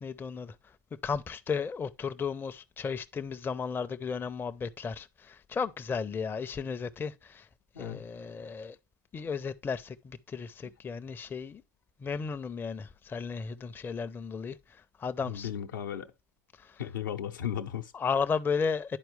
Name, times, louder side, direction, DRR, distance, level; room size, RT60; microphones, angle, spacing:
voice 1, 0.0-0.5 1.0-7.5 7.8-8.8 9.1-11.6 12.0-14.6 15.0-15.5 17.9-19.0, left 5 dB, 20° left, 0.5 m, -34 dB
voice 2, 15.2-16.1 16.8-17.9, left 9 dB, 75° left, 0.8 m, -35 dB
10.5 x 4.5 x 3.2 m
hypercardioid pair, 85°, 11 cm